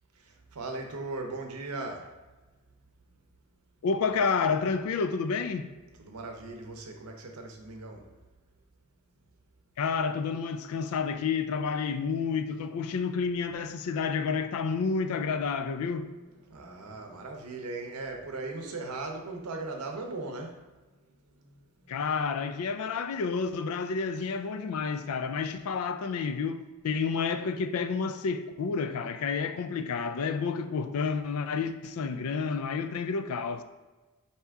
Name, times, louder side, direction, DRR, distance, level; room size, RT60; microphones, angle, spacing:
voice 1, 0.3-2.1 6.0-8.0 16.2-20.6, right 3 dB, 80° right, 0.7 m, -38 dB
voice 2, 3.8-5.7 9.8-16.1 21.9-33.6, left 5 dB, 70° left, 0.3 m, -30 dB
4.5 x 2.8 x 3.5 m
head